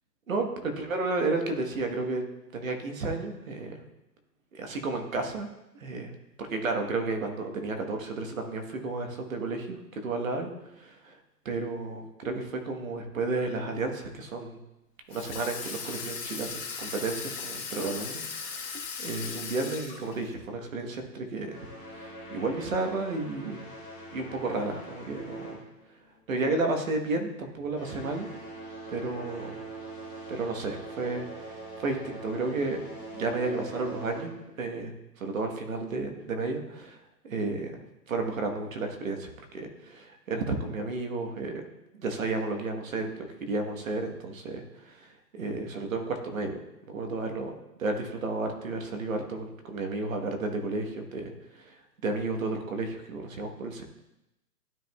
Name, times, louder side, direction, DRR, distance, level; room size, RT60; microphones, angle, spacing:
voice 1, 0.3-2.2 2.5-3.7 4.5-5.5 5.8-10.5 10.8-11.2 11.4-14.6 15.1-21.7 21.9-23.6 24.1-25.6 26.3-28.3 28.9-29.6 30.3-32.8 33.1-34.3 34.6-37.0 37.2-37.7 38.1-41.6 41.9-46.6 46.9-47.5 47.8-51.8 52.0-54.0, right 3 dB, 50° right, 4 dB, 1.3 m, -32 dB
Water tap faucet / Sink (filling or washing), 15.1-20.3, left 5 dB, 35° left, 2.7 m, -38 dB
sound 1, 21.4-26.3 26.6-26.9 27.5-34.6, right 2 dB, 10° right, 2.3 m, -43 dB
12.5 x 4.9 x 2.3 m, 0.90 s
hypercardioid pair, 170°, 50 cm